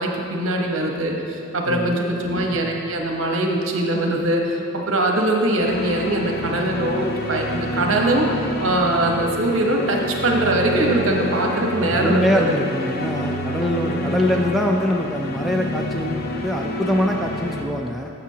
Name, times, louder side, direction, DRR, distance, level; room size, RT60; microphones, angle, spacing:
voice 1, 0.0-12.5 14.3-14.4, right 1 dB, 65° right, 1 dB, 1.0 m, -22 dB
voice 2, 1.7-2.0 11.9-18.1, left 1 dB, ahead, -1 dB, 0.3 m, -23 dB
sound 1, 5.6-17.6, left 1 dB, 45° left, 0.6 m, -28 dB
11.5 x 7.1 x 2.8 m, 2.7 s
head